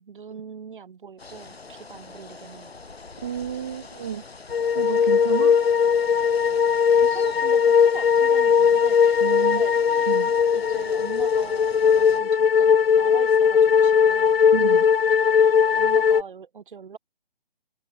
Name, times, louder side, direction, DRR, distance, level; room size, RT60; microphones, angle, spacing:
voice 1, 0.0-2.7 6.9-9.8 10.5-14.4 15.8-17.0, right 6 dB, 55° right, 3.7 m, -41 dB
sound 1, 1.2-12.2, left 4 dB, 90° left, 2.2 m, -43 dB
voice 2, 3.2-4.2 4.7-5.6 9.2-9.6 10.1-10.3 14.5-14.9, right 9 dB, 15° right, 0.6 m, -31 dB
sound 2, 4.5-16.2, left 7 dB, 70° left, 0.8 m, -19 dB
figure-of-eight pair, 155°, 30 cm